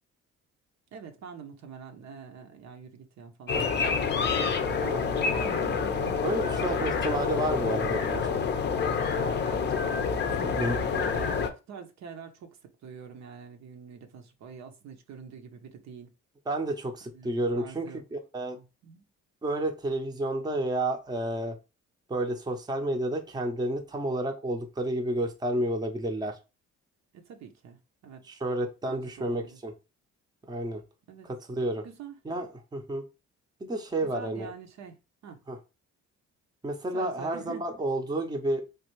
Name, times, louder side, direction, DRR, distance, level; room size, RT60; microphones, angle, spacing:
voice 1, 0.9-3.7 4.1-6.3 9.2-16.1 17.1-18.0 18.5-19.0 27.1-28.2 28.8-29.6 31.1-31.3 31.8-32.2 34.0-35.0 35.2-35.4 36.9-37.8, right 6 dB, 65° right, 0.7 m, -45 dB
sound 1, 3.5-11.5, left 5 dB, 35° left, 0.5 m, -27 dB
voice 2, 6.2-8.4 10.4-10.8 16.5-18.6 19.4-21.6 22.1-26.3 28.3-29.7 30.5-30.8 31.5-31.9 32.3-33.0 33.6-34.5 35.5-35.6 36.6-38.6, right 1 dB, 15° right, 0.6 m, -30 dB
3.3 x 2.4 x 3.0 m
cardioid pair, 90°, 30 cm